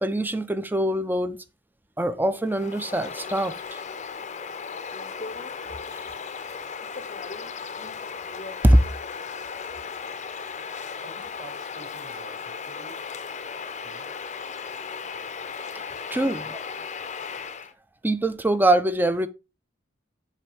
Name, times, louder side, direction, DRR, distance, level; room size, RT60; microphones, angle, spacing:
voice 1, 0.0-1.4 2.0-3.8 6.0-6.1 8.6-8.8 16.1-16.4 18.0-19.3, right 1 dB, 10° right, 0.5 m, -22 dB
Bird vocalization bird call bird song, 2.4-17.7, left 5 dB, 40° left, 0.7 m, -36 dB
voice 2, 11.0-13.1 13.8-14.2 15.9-16.9, right 3 dB, 75° right, 4.6 m, -49 dB
7.5 x 4.3 x 4.8 m
head